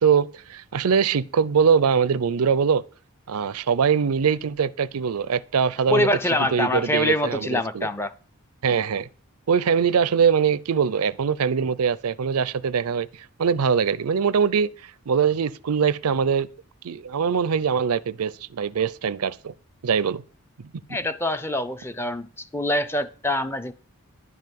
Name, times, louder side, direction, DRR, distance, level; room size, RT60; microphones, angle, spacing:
voice 1, 0.0-2.8 3.3-7.9 8.6-9.1 9.5-13.1 13.4-14.7 15.1-16.5 16.8-19.5 19.8-20.2, right 6 dB, 85° right, 0.5 m, -22 dB
voice 2, 5.9-8.1 20.9-23.7, left 1 dB, 10° left, 0.5 m, -25 dB
11.0 x 5.5 x 7.7 m
head